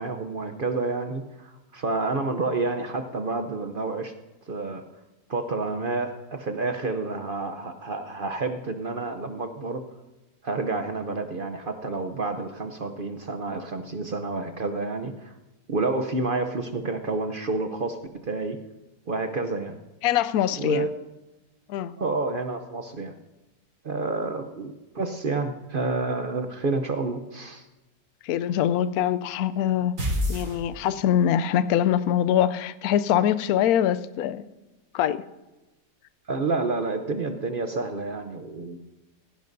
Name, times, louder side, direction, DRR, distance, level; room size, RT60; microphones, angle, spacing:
voice 1, 0.0-4.1 4.5-4.8 5.3-9.8 10.4-15.3 15.7-18.0 18.2-18.6 19.1-19.8 20.6-20.9 22.0-23.1 23.8-27.6 36.3-38.8, right 3 dB, 50° right, 0.6 m, -29 dB
voice 2, 20.0-20.9 21.7-21.9 28.2-30.0 30.3-34.4 34.9-35.2, left 10 dB, 70° left, 1.0 m, -23 dB
sound 1, 30.0-31.2, left 1 dB, 85° right, 4.3 m, -28 dB
16.5 x 16.0 x 2.6 m
omnidirectional pair, 1.8 m